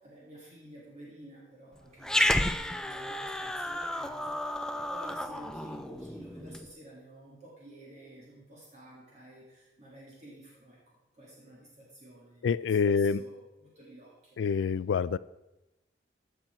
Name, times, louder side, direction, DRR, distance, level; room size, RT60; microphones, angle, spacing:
voice 1, 0.0-14.4, right 1 dB, 40° right, 2.3 m, -51 dB
Growling, 2.0-6.7, left 1 dB, 5° left, 0.4 m, -31 dB
voice 2, 12.4-13.2 14.4-15.2, left 6 dB, 85° left, 0.3 m, -26 dB
15.0 x 6.0 x 4.5 m
head